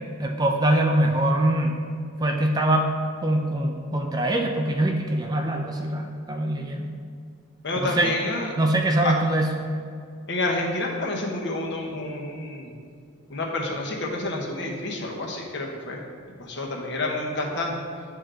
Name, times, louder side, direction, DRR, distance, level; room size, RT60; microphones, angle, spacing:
voice 1, 0.2-1.8 2.2-2.9 3.2-7.0 7.8-8.1 8.6-9.5, right 1 dB, 20° right, 2 dB, 0.4 m, -23 dB
voice 2, 7.6-8.5 9.0-9.1 10.3-12.7 13.3-16.0 16.4-17.7, left 2 dB, 55° left, 0 dB, 1.0 m, -29 dB
10.5 x 3.8 x 3.3 m, 2.2 s
head